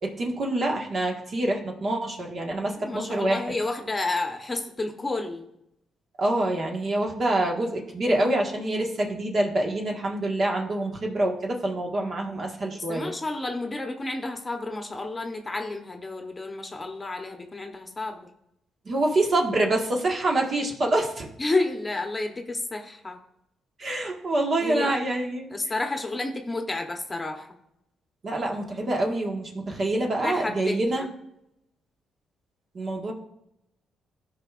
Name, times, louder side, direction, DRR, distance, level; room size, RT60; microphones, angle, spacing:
voice 1, 0.0-3.4 6.2-13.1 18.8-21.3 23.8-25.5 28.2-31.1 32.7-33.1, right 1 dB, 45° right, 1 dB, 1.6 m, -26 dB
voice 2, 2.8-5.5 12.7-18.2 21.4-23.2 24.6-25.0 25.5-27.5 30.2-31.1, left 2 dB, 20° left, 4 dB, 1.0 m, -30 dB
13.0 x 5.1 x 2.5 m, 0.80 s
cardioid pair, 90°, 0 cm